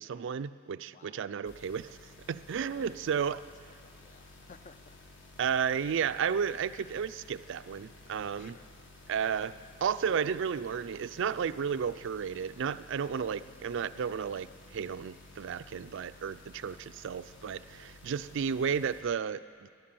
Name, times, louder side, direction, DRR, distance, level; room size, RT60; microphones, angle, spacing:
voice 1, 0.0-2.0 2.3-3.4 5.4-8.6 9.1-9.5 9.8-19.7, right 7 dB, 60° right, 14 dB, 0.4 m, -33 dB
voice 2, 0.9-1.2 2.5-3.0 3.6-5.0 8.4-8.8 10.1-10.2 16.6-16.7, left 5 dB, 35° left, 11 dB, 0.4 m, -57 dB
sound 1, 1.4-19.0, left 2 dB, 60° left, 1.6 m, -54 dB
12.5 x 10.5 x 7.6 m, 2.2 s
head